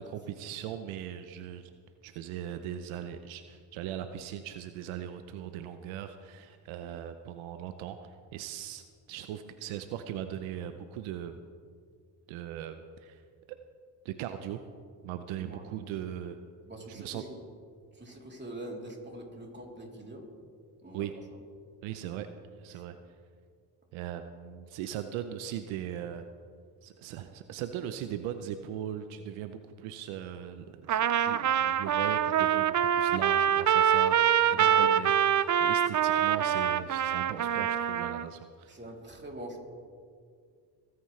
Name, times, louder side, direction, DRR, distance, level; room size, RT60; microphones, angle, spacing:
voice 1, 0.0-1.7 2.0-11.4 12.3-13.2 13.5-13.6 14.0-14.6 15.0-16.4 17.0-17.2 20.9-21.1 21.8-22.3 22.6-23.0 23.9-26.3 26.8-38.8, right 10 dB, 85° right, 9 dB, 0.7 m, -39 dB
voice 2, 16.6-17.4 17.9-20.3 20.8-21.1 22.7-22.8 34.5-34.9 38.7-39.6, right 1 dB, 20° right, -1 dB, 3.3 m, -44 dB
Trumpet, 30.9-38.3, right 9 dB, 40° right, 0.6 m, -25 dB
22.5 x 9.4 x 3.2 m, 2.1 s
supercardioid pair, 65°, 47 cm